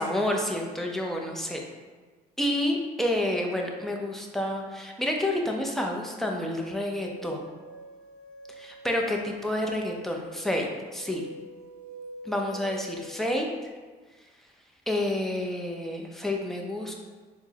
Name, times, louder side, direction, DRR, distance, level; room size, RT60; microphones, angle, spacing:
voice 1, 0.0-1.6 2.4-7.4 8.6-11.2 12.3-13.5 14.9-16.9, left 1 dB, ahead, 0 dB, 0.4 m, -29 dB
sound 1, 6.5-13.7, right 2 dB, 80° right, 0.4 m, -45 dB
4.5 x 2.0 x 2.7 m, 1.4 s
cardioid pair, 110°, 17 cm